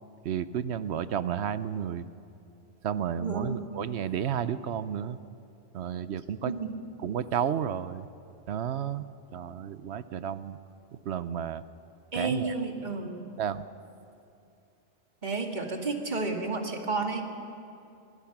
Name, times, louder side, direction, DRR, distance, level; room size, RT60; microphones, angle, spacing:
voice 1, 0.2-2.0 2.8-5.2 5.7-6.5 7.0-8.1 8.5-9.0 9.3-10.6 11.1-11.6 12.1-12.5 13.4-13.6, right 9 dB, 70° right, 14 dB, 0.9 m, -32 dB
voice 2, 3.2-3.6 6.4-6.7 12.1-13.2 15.2-17.2, right 3 dB, 40° right, 2 dB, 2.2 m, -31 dB
26.5 x 20.5 x 6.0 m, 2.6 s
omnidirectional pair, 1.2 m